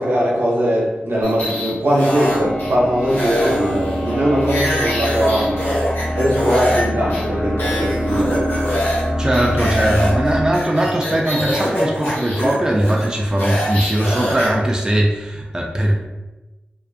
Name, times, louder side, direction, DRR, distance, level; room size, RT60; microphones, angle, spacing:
voice 1, 0.0-5.6 6.1-8.5, equal, 70° right, -4 dB, 0.7 m, -20 dB
sound 1, 1.2-2.7 3.1-6.8 7.1-7.2 7.6-9.0 9.3-14.5, equal, 80° left, 1.0 m, -24 dB
sound 2, 2.1-10.5, equal, 25° left, 0.7 m, -24 dB
voice 2, 9.2-16.0, right 1 dB, 20° right, -1 dB, 0.4 m, -19 dB
2.4 x 2.4 x 2.4 m, 1.1 s
cardioid pair, 50°, 4 cm